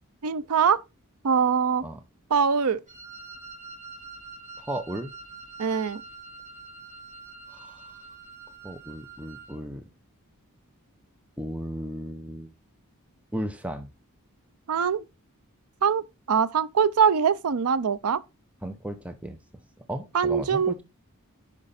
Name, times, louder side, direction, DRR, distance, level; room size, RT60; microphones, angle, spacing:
voice 1, 0.2-0.8 1.2-1.8 2.3-2.8 5.6-6.0 14.7-15.0 15.8-16.0 16.3-18.2 20.1-20.8, right 6 dB, 85° right, 0.5 m, -23 dB
Wind instrument woodwind instrument, 2.9-9.6, right 4 dB, 35° right, 3.8 m, -45 dB
voice 2, 4.6-5.1 7.5-7.9 8.6-9.9 11.4-12.5 13.3-13.9 18.6-19.4 19.9-20.8, right 1 dB, 5° right, 0.8 m, -35 dB
10.5 x 5.1 x 4.2 m
head